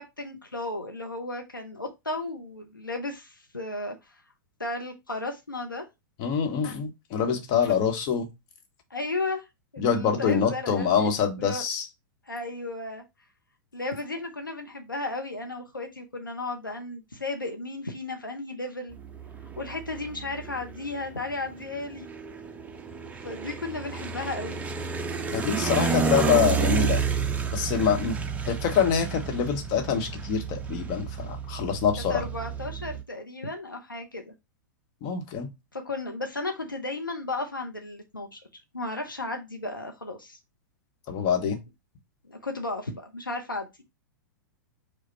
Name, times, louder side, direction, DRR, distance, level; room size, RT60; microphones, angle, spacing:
voice 1, 0.0-4.2 4.6-5.8 7.7-7.8 8.9-9.5 9.7-11.1 11.4-11.6 12.3-13.0 13.7-19.0 19.6-22.1 23.1-24.6 25.6-26.0 32.1-34.3 35.7-38.4 38.7-40.4 42.3-43.7, left 2 dB, 85° left, 0.7 m, -34 dB
voice 2, 6.2-8.3 9.8-11.8 25.3-27.0 27.5-28.2 28.5-32.3 35.0-35.5 41.1-41.6, left 7 dB, 40° left, 1.1 m, -25 dB
sound 1, 18.9-33.0, right 5 dB, 15° right, 0.5 m, -31 dB
4.9 x 2.3 x 4.3 m
figure-of-eight pair, 100°, 11 cm